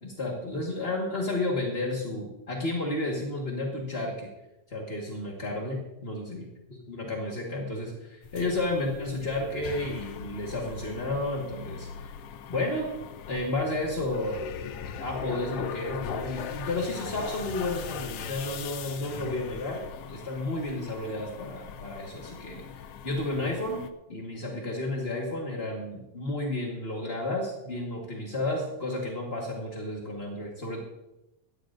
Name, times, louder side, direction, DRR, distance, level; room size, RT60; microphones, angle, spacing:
voice 1, 0.0-4.3 4.7-12.1 12.5-12.9 13.3-14.4 14.9-22.6 23.0-23.8 24.1-30.8, left 2 dB, 35° left, -2 dB, 1.0 m, -32 dB
sound 1, 8.2-23.9, left 7 dB, 75° left, 1.4 m, -40 dB
17.5 x 14.5 x 2.6 m, 0.93 s
omnidirectional pair, 3.5 m